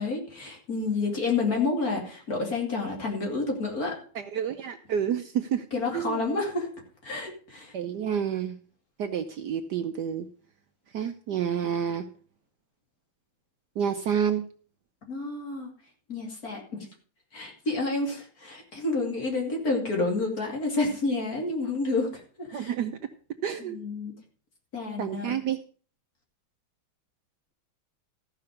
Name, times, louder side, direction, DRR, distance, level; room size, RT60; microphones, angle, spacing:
voice 1, 0.0-4.0 5.7-6.7 7.0-7.7 15.1-15.7 16.1-16.9 17.3-22.7 23.6-24.1 24.7-25.4, left 3 dB, 45° left, 0 dB, 3.0 m, -29 dB
voice 2, 4.1-5.7 5.9-6.2 7.7-8.6 9.0-10.3 10.9-12.0 13.8-14.4 22.5-23.0 23.4-23.8 25.0-25.6, right 8 dB, 65° right, 8 dB, 1.1 m, -29 dB
14.0 x 5.8 x 6.5 m, 0.43 s
omnidirectional pair, 2.3 m